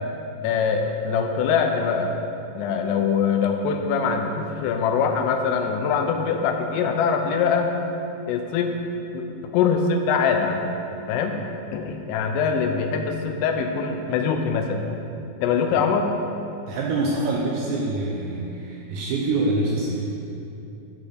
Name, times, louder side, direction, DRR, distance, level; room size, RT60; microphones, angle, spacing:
voice 1, 0.4-2.2 2.5-7.7 8.3-8.8 9.1-10.7 11.1-11.4 11.7-14.8 15.4-16.1, left 6 dB, 85° left, 4 dB, 3.2 m, -23 dB
voice 2, 16.7-20.1, right 2 dB, 80° right, -2 dB, 2.6 m, -25 dB
11.5 x 4.2 x 6.5 m, 2.8 s
omnidirectional pair, 5.9 m